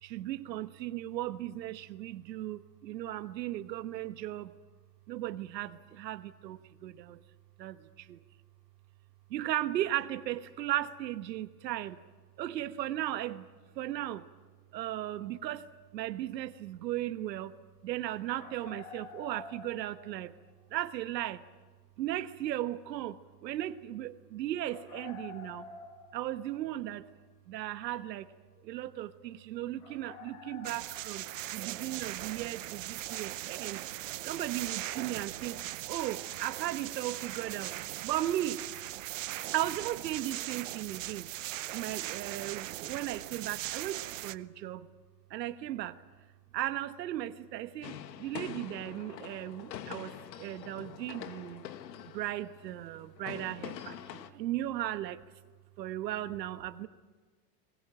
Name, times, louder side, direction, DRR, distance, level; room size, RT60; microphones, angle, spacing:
voice 1, 0.0-4.5 5.1-7.2 7.6-8.2 9.3-12.0 12.4-13.4 13.8-14.3 14.7-15.6 15.9-17.5 17.8-20.3 20.7-21.4 22.0-25.7 26.1-27.1 27.5-28.3 28.6-31.2 31.5-33.8 34.2-35.6 35.9-37.7 38.0-38.6 39.5-41.3 41.7-44.9 45.3-46.0 46.5-51.7 52.1-55.2 55.8-56.9, right 13 dB, 80° right, 11 dB, 1.3 m, -36 dB
sound 1, 18.4-20.4 20.6-20.7 24.7-26.6 27.0-27.1 28.1-28.2 28.6-28.7 29.2-29.4 29.8-31.7, left 4 dB, 55° left, 4.9 m, -49 dB
sound 2, 30.6-44.4, right 15 dB, 50° right, 0.7 m, -39 dB
sound 3, 47.8-54.3, left 10 dB, 80° left, 1.8 m, -45 dB
21.5 x 20.5 x 8.9 m, 1.4 s
supercardioid pair, 175°, 50 cm